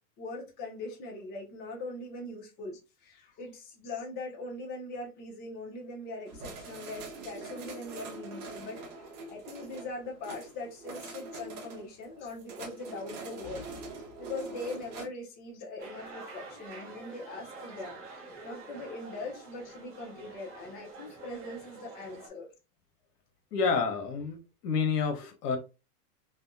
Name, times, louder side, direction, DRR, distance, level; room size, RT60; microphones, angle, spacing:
voice 1, 0.2-8.8 9.3-13.7 14.2-18.0 18.4-22.5, left 2 dB, 20° left, 0.7 m, -41 dB
sound 1, 6.3-15.1, right 3 dB, 65° right, 1.2 m, -44 dB
sound 2, 15.8-22.3, right 3 dB, 30° right, 0.8 m, -47 dB
voice 2, 23.5-24.4 24.6-25.6, left 5 dB, 75° left, 1.0 m, -29 dB
3.4 x 2.2 x 2.5 m
hypercardioid pair, 135°, 47 cm